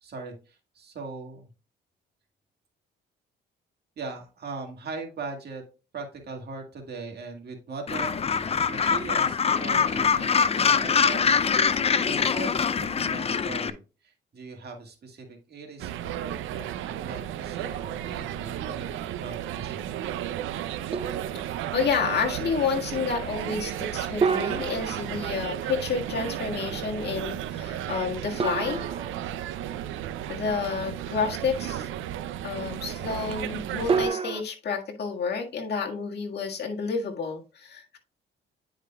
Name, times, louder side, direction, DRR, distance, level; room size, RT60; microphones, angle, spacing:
voice 1, 0.0-1.5 4.0-5.6 5.9-8.3 8.7-19.9, right 4 dB, 55° right, 3 dB, 1.9 m, -40 dB
Gull seagull, 7.9-13.7, left 6 dB, 30° left, 0.5 m, -24 dB
sound 1, 15.8-34.1, right 11 dB, 85° right, 0.5 m, -34 dB
sound 2, 17.6-18.5 19.0-19.1 20.9-21.8 24.2-25.8 28.4-29.7 33.9-34.4, right 5 dB, 30° right, 0.7 m, -30 dB
voice 2, 21.7-28.8 30.3-31.9 32.4-38.0, left 5 dB, 55° left, 0 dB, 1.7 m, -30 dB
9.9 x 5.0 x 2.3 m, 0.32 s
cardioid pair, 90°, 20 cm